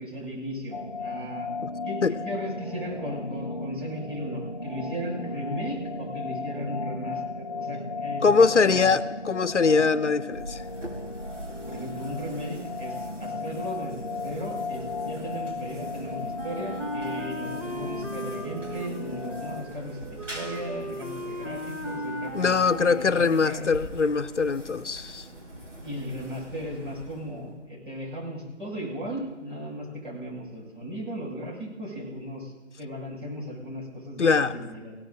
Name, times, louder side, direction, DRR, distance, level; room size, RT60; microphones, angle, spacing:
voice 1, 0.0-1.5 1.8-8.9 11.7-22.6 22.9-23.7 25.8-32.5 32.8-35.0, equal, 45° right, -4 dB, 6.4 m, -36 dB
sound 1, 0.7-19.6, left 3 dB, 35° left, 0.4 m, -35 dB
voice 2, 8.2-10.6 22.3-25.2 34.2-34.5, left 5 dB, 70° left, 14 dB, 0.7 m, -22 dB
sound 2, 10.3-27.7, right 1 dB, 85° right, 4.8 m, -44 dB
Wind instrument woodwind instrument, 16.4-23.4, left 1 dB, 15° right, 0.7 m, -37 dB
21.5 x 17.0 x 2.6 m, 1.2 s
figure-of-eight pair, 155°, 37 cm